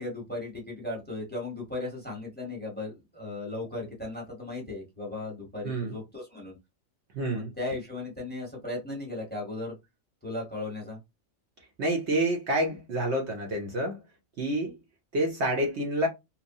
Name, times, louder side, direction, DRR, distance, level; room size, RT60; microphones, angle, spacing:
voice 1, 0.0-6.6 7.3-9.7 10.2-11.0, left 2 dB, 10° left, 1.0 m, -36 dB
voice 2, 5.6-6.0 7.1-7.5 11.8-14.0 14.4-14.7 15.1-16.1, right 1 dB, 60° right, 0.9 m, -28 dB
2.9 x 2.0 x 2.6 m
omnidirectional pair, 1.4 m